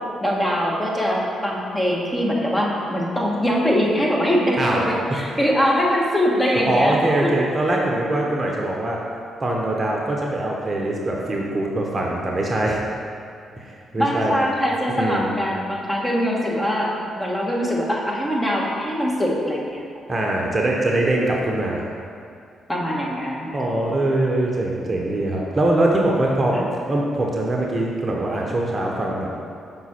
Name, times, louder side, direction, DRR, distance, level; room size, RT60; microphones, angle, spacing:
voice 1, 0.2-7.3 8.1-8.2 14.0-19.9 22.7-23.7 26.5-26.6, equal, 15° left, -3 dB, 1.4 m, -22 dB
voice 2, 6.7-9.0 9.4-12.8 13.6-14.3 14.9-15.3 20.1-21.8 23.5-26.6 26.9-29.3, right 1 dB, 35° right, -1 dB, 0.9 m, -22 dB
6.0 x 3.8 x 4.3 m, 2.4 s
hypercardioid pair, 45°, 0 cm